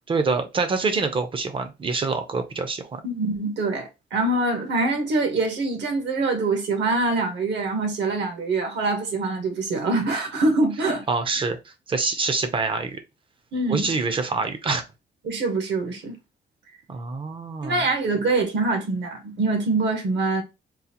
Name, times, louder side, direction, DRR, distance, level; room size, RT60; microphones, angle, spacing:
voice 1, 0.1-3.0 11.1-13.0 13.7-14.8 16.9-17.8, right 4 dB, 25° right, 0.5 m, -26 dB
voice 2, 3.0-11.0 13.5-13.9 15.2-16.1 17.6-20.4, right 3 dB, 65° right, 1.0 m, -24 dB
3.8 x 2.4 x 2.8 m
wide cardioid pair, 175°, 20 cm